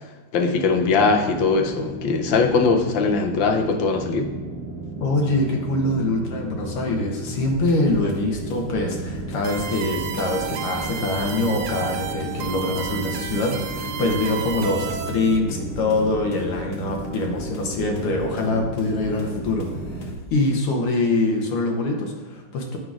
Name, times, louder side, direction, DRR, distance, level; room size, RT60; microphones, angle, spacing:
voice 1, 0.3-4.3, left 4 dB, 70° left, 3 dB, 1.3 m, -20 dB
sound 1, 0.6-20.1, right 1 dB, 60° right, 1.5 m, -34 dB
voice 2, 5.0-20.1 20.3-22.8, left 2 dB, 85° left, 1 dB, 1.8 m, -24 dB
sound 2, 7.3-20.4, equal, 55° left, 1.1 m, -39 dB
sound 3, 9.4-15.4, right 9 dB, 80° right, 1.5 m, -32 dB
9.2 x 5.4 x 2.4 m, 1.2 s
omnidirectional pair, 2.3 m